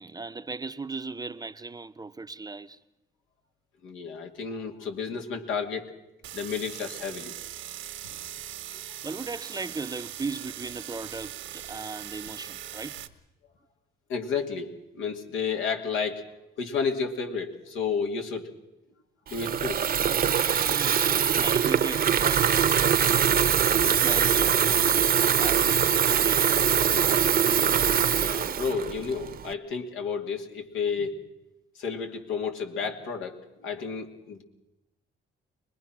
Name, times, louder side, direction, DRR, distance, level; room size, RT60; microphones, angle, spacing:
voice 1, 0.0-2.8 9.0-13.0 20.5-22.7 23.7-25.0 25.4-26.7, right 3 dB, 20° right, 0.7 m, -37 dB
voice 2, 3.8-5.9 6.3-7.3 14.1-14.7 14.9-16.3 16.6-18.5 19.3-19.9 28.1-31.2 31.8-34.4, left 5 dB, 85° left, 2.6 m, -31 dB
sound 1, 6.2-13.1, right 12 dB, 85° right, 1.3 m, -40 dB
Water tap faucet / Fill (with liquid), 19.3-29.5, right 8 dB, 50° right, 0.8 m, -23 dB
24.0 x 20.5 x 6.0 m
cardioid pair, 90°, 20 cm